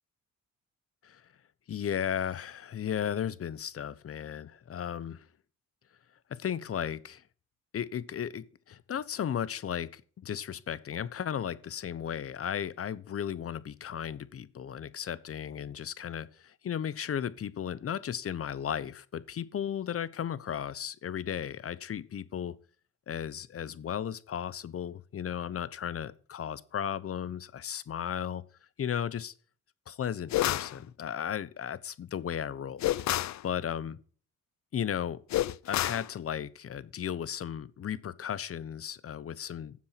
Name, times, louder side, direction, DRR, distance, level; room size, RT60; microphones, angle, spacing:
voice 1, 1.7-5.3 6.3-7.2 7.7-22.5 23.1-28.4 28.8-29.3 29.9-32.8 33.1-34.0 34.7-35.2 35.6-39.7, left 9 dB, 50° left, 1.0 m, -35 dB
sound 1, 30.3-30.8 32.8-33.4 35.3-36.1, left 14 dB, 65° left, 0.6 m, -28 dB
12.5 x 7.5 x 5.9 m
cardioid pair, 90°, 30 cm